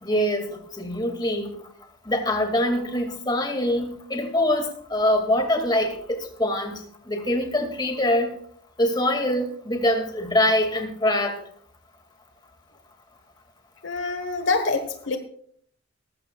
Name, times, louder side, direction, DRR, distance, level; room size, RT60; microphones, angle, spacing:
voice 1, 0.0-1.5 2.1-8.3 8.8-11.4, left 1 dB, 20° left, 3 dB, 2.2 m, -24 dB
voice 2, 13.8-15.2, left 3 dB, 70° left, 7 dB, 1.2 m, -25 dB
18.5 x 15.0 x 2.3 m, 0.62 s
head